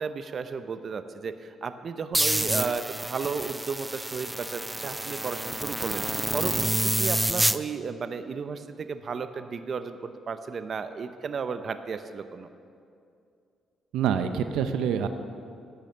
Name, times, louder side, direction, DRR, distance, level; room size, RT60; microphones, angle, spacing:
voice 1, 0.0-12.5, right 5 dB, 50° right, 10 dB, 0.6 m, -34 dB
sound 1, 2.1-7.6, right 1 dB, 10° right, 0.4 m, -28 dB
voice 2, 13.9-15.1, right 8 dB, 85° right, 9 dB, 0.6 m, -26 dB
14.0 x 9.2 x 5.6 m, 2.5 s
cardioid pair, 90°, 0 cm